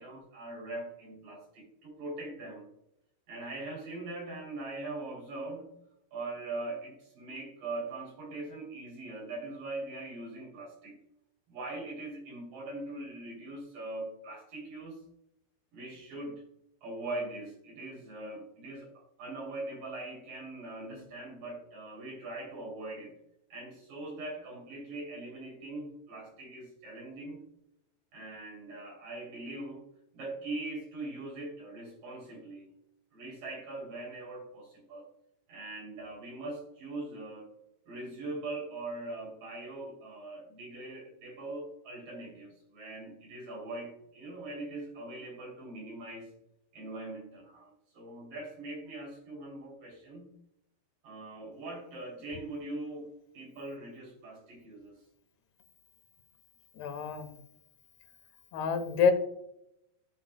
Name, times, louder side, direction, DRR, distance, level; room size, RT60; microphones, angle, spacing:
voice 1, 0.0-2.7 3.3-5.7 6.1-11.0 11.5-15.0 15.7-16.4 16.8-23.2 23.5-27.4 28.1-29.8 30.1-32.7 33.1-35.1 35.5-37.5 37.9-46.3 46.7-50.3 51.0-55.0, right 2 dB, 55° right, -2 dB, 4.5 m, -41 dB
voice 2, 56.8-57.3 58.5-59.1, left 6 dB, 80° left, 7 dB, 2.9 m, -27 dB
14.5 x 6.0 x 2.2 m, 0.79 s
omnidirectional pair, 4.7 m